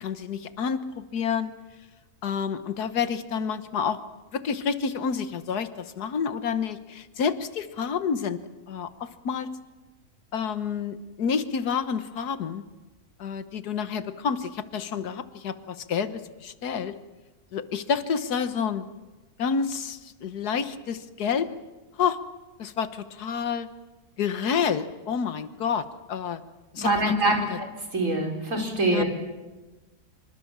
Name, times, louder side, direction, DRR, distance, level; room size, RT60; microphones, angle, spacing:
voice 1, 0.0-1.5 2.2-4.0 4.3-8.4 8.7-9.5 10.3-12.6 13.2-17.0 17.5-18.9 19.4-21.5 22.0-22.2 22.6-23.7 24.2-26.4 26.7-27.6 28.9-29.0, left 6 dB, 80° left, 12 dB, 1.7 m, -29 dB
voice 2, 26.8-27.7 27.9-29.0, right 1 dB, 55° right, 2 dB, 4.8 m, -24 dB
26.0 x 24.5 x 7.4 m, 1.2 s
omnidirectional pair, 1.7 m